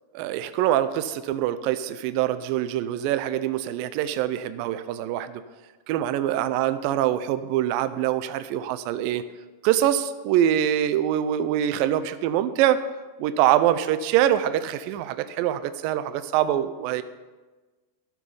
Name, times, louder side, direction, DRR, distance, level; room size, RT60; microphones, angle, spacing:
voice 1, 0.1-5.4 5.9-9.2 9.6-12.9 13.2-17.0, right 11 dB, 90° right, 12 dB, 2.0 m, -24 dB
12.5 x 9.1 x 5.5 m, 1.3 s
omnidirectional pair, 4.6 m